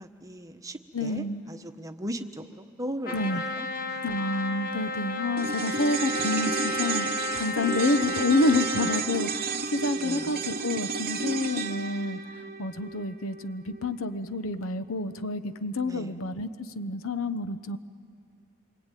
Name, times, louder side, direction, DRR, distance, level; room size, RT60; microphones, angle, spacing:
voice 1, 0.0-1.2 1.5-3.2 10.0-10.2 15.9-16.1, equal, 15° right, 6 dB, 1.1 m, -37 dB
voice 2, 0.9-1.4 3.1-3.4 4.0-17.8, left 2 dB, 75° left, 11 dB, 1.0 m, -29 dB
Trumpet, 3.0-9.1, left 2 dB, 45° left, 1.8 m, -32 dB
sound 1, 5.4-13.9 14.1-14.2, right 4 dB, 45° right, 1.0 m, -32 dB
26.5 x 24.5 x 9.2 m, 2.4 s
head